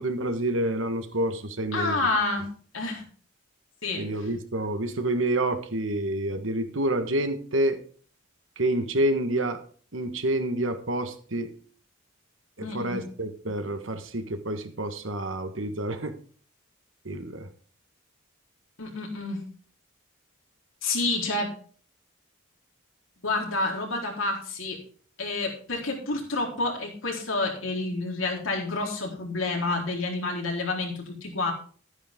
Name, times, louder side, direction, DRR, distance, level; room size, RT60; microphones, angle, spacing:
voice 1, 0.0-2.0 4.0-7.8 8.6-9.6 9.9-11.5 12.6-16.1 17.0-17.5, right 1 dB, 75° right, 8 dB, 1.6 m, -28 dB
voice 2, 1.7-2.5 2.7-3.1 3.8-4.0 12.6-13.1 18.8-19.4 20.8-21.5 23.2-24.8 25.2-31.5, left 2 dB, 85° left, 0 dB, 4.1 m, -29 dB
12.5 x 9.8 x 3.7 m, 0.44 s
head